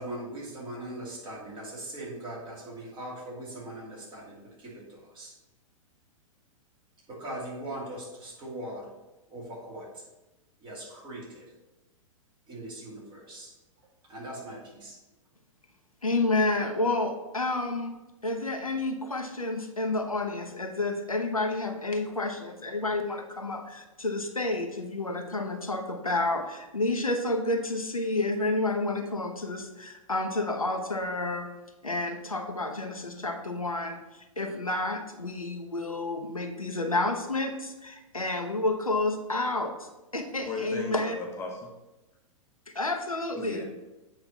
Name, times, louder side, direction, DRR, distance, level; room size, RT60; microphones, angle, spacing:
voice 1, 0.0-4.3 5.2-5.3 7.1-8.8 9.3-9.8 10.6-11.4 12.5-13.5 14.1-14.6 14.8-14.9, right 1 dB, 25° right, -4 dB, 2.7 m, -40 dB
voice 2, 16.0-17.9 18.2-31.5 31.8-41.2 42.7-43.6, left 2 dB, 90° left, 4 dB, 0.9 m, -30 dB
voice 3, 40.5-41.7 43.4-43.6, left 4 dB, 15° left, -2 dB, 1.1 m, -36 dB
8.3 x 3.4 x 5.7 m, 1.0 s
figure-of-eight pair, 105°, 18 cm